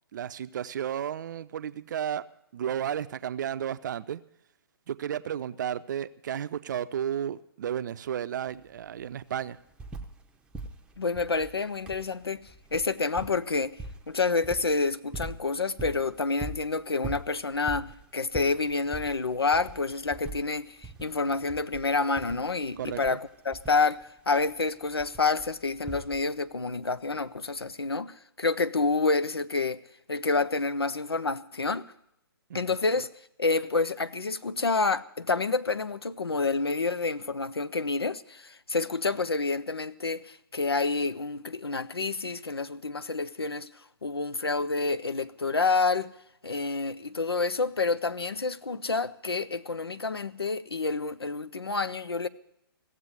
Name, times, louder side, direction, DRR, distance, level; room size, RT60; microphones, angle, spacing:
voice 1, 0.1-2.2 2.5-4.2 4.9-9.6 22.8-23.2 32.5-32.6 47.1-47.2, right 9 dB, 50° right, 0.6 m, -33 dB
sound 1, 8.5-8.6 8.8-10.3 10.5-26.5 27.6-27.7, right 2 dB, 5° right, 0.7 m, -43 dB
voice 2, 11.0-12.4 12.7-13.8 14.1-29.8 30.1-31.9 32.5-33.1 33.4-43.7 44.0-46.1 46.4-52.3, left 3 dB, 90° left, 0.7 m, -28 dB
16.0 x 7.5 x 9.6 m
figure-of-eight pair, 130°, 13 cm